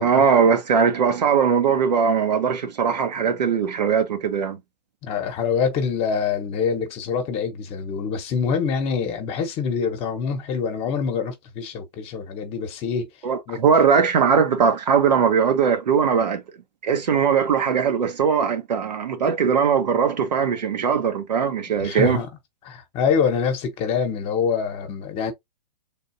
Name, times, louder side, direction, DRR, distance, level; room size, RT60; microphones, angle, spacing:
voice 1, 0.0-4.6 13.2-16.4 16.8-22.2, right 6 dB, 80° right, 1.0 m, -20 dB
voice 2, 5.0-13.1 13.5-13.6 21.8-22.3 22.6-25.3, left 6 dB, 30° left, 0.9 m, -25 dB
3.5 x 2.7 x 2.6 m
hypercardioid pair, 135°, 21 cm